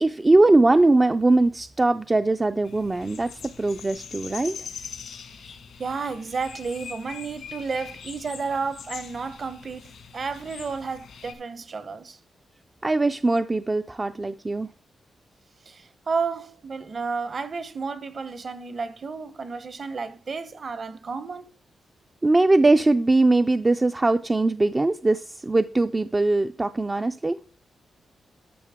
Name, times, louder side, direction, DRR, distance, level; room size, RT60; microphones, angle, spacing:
voice 1, 0.0-4.6 12.8-14.7 22.2-27.4, right 2 dB, 20° right, 0.3 m, -21 dB
sound 1, 2.6-11.3, left 7 dB, 90° left, 1.6 m, -42 dB
voice 2, 5.8-12.2 15.7-21.5, right 4 dB, 45° right, 0.8 m, -32 dB
12.0 x 6.6 x 3.6 m
wide cardioid pair, 135°, 0 cm